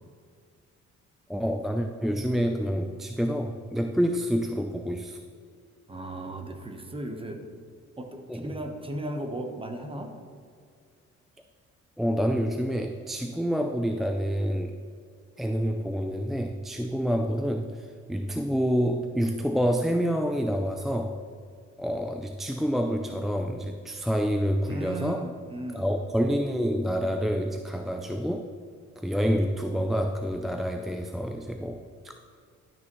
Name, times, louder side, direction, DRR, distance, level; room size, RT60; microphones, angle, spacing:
voice 1, 1.3-5.2 8.3-8.5 12.0-14.8 15.4-21.2 21.8-25.3 25.7-28.5 29.0-32.1, equal, ahead, 4 dB, 0.3 m, -28 dB
voice 2, 5.9-7.4 8.0-10.2 24.7-25.8, right 1 dB, 20° right, 4 dB, 1.0 m, -36 dB
12.0 x 6.0 x 3.0 m, 2.1 s
cardioid pair, 90°, 30 cm